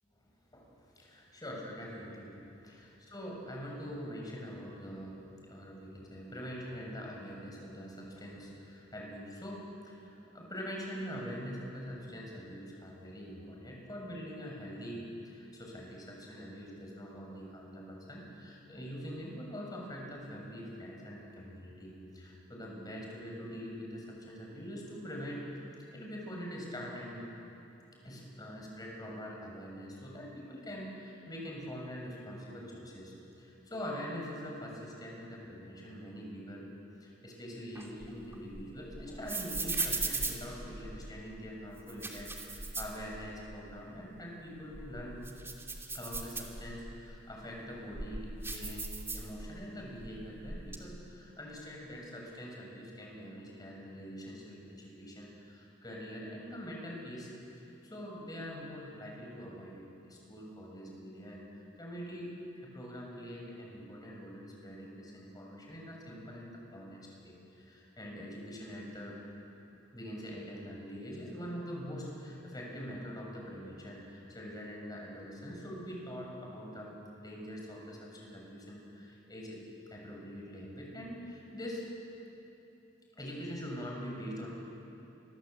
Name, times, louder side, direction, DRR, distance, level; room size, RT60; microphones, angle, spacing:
voice 1, 0.5-2.3 2.6-5.2 5.5-25.4 25.9-27.3 28.0-36.7 37.0-45.2 45.9-48.9 49.1-57.3 57.6-62.4 62.6-69.2 69.9-76.9 77.2-79.6 79.9-81.9 83.1-84.5, equal, 20° left, -1 dB, 7.0 m, -44 dB
sound 1, 37.7-41.2 41.8-43.6 43.9-44.0 44.6-46.9 47.5-49.7 50.0-50.8, right 3 dB, 15° right, 2.7 m, -38 dB
29.0 x 23.0 x 8.3 m, 2.8 s
head